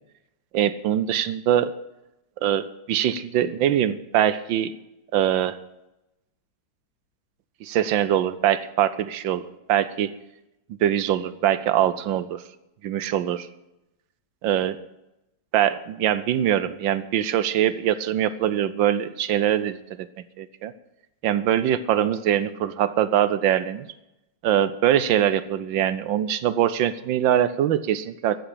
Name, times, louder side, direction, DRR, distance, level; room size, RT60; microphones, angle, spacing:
voice 1, 0.5-1.7 2.4-4.7 5.1-5.6 7.6-9.4 9.7-10.1 10.7-12.4 12.8-13.5 14.4-14.8 15.5-20.1 20.4-20.7 21.2-23.9 24.4-28.4, right 10 dB, 75° right, 15 dB, 1.4 m, -23 dB
14.5 x 8.0 x 8.5 m, 0.92 s
omnidirectional pair, 2.2 m